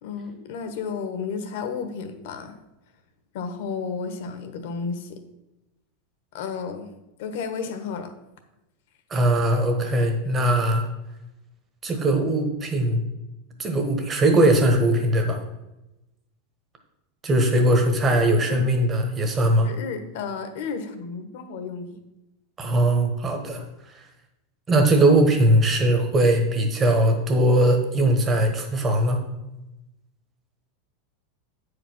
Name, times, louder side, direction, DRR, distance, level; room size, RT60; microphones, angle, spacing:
voice 1, 0.0-2.6 3.3-5.2 6.3-6.9 7.2-8.1 18.5-18.6 19.6-22.0, left 5 dB, 60° left, 8 dB, 1.2 m, -32 dB
voice 2, 9.1-10.8 11.8-13.0 13.6-15.4 17.2-19.7 22.6-23.6 24.7-29.2, right 1 dB, 15° right, 4 dB, 1.2 m, -20 dB
9.1 x 5.0 x 6.0 m, 0.96 s
supercardioid pair, 165°, 0 cm